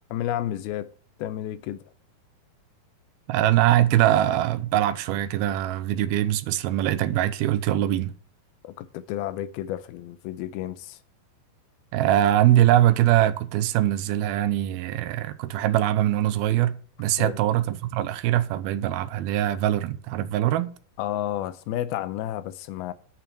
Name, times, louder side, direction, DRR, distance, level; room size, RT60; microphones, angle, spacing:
voice 1, 0.1-0.9 1.2-1.9 8.6-11.0 17.2-17.4 21.0-22.9, left 12 dB, 85° left, 2.6 m, -31 dB
voice 2, 3.3-8.1 11.9-20.7, right 13 dB, 90° right, 2.6 m, -22 dB
11.5 x 5.7 x 7.8 m
omnidirectional pair, 4.3 m